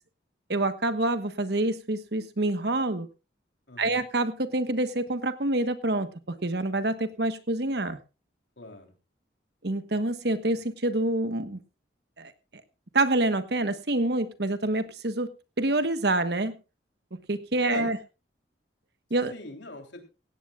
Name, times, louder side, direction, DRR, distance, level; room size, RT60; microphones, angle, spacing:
voice 1, 0.5-3.1 3.8-8.0 9.6-11.6 12.2-12.3 12.9-15.3 15.6-16.6 17.3-18.0 19.1-19.3, right 2 dB, 60° right, 11 dB, 1.3 m, -27 dB
voice 2, 3.7-4.0 8.6-8.9 17.5-18.0 19.3-20.0, left 2 dB, 80° left, 4 dB, 3.5 m, -42 dB
17.0 x 16.5 x 2.4 m, 0.30 s
head